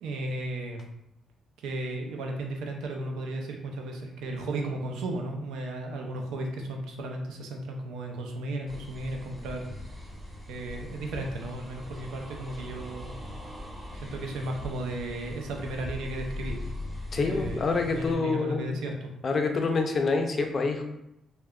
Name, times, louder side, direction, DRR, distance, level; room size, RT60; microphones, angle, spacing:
voice 1, 0.0-0.8 1.6-9.7 10.5-13.1 14.0-16.5 17.2-18.9, right 1 dB, 90° right, 2 dB, 0.5 m, -35 dB
sound 1, 8.7-18.1, left 1 dB, ahead, 0.8 m, -40 dB
voice 2, 17.1-18.8 19.2-20.8, left 4 dB, 45° left, 4 dB, 0.4 m, -27 dB
3.4 x 2.2 x 2.3 m, 0.84 s
cardioid pair, 90°, 0 cm